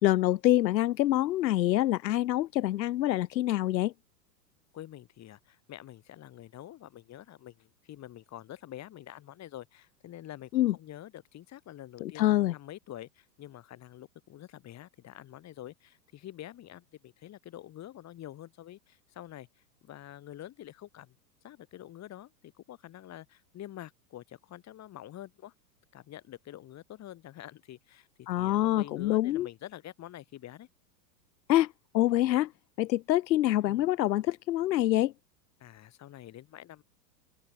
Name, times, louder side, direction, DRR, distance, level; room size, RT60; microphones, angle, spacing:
voice 1, 0.0-3.9 10.5-10.7 12.0-12.5 28.3-29.5 31.5-32.5 32.8-35.1, left 14 dB, 85° left, 0.9 m, -26 dB
voice 2, 4.7-19.5 19.8-21.2 21.4-25.5 25.9-30.7 33.6-33.8 35.6-36.8, left 13 dB, 30° left, 4.0 m, -47 dB
open air
hypercardioid pair, 115°, 50 cm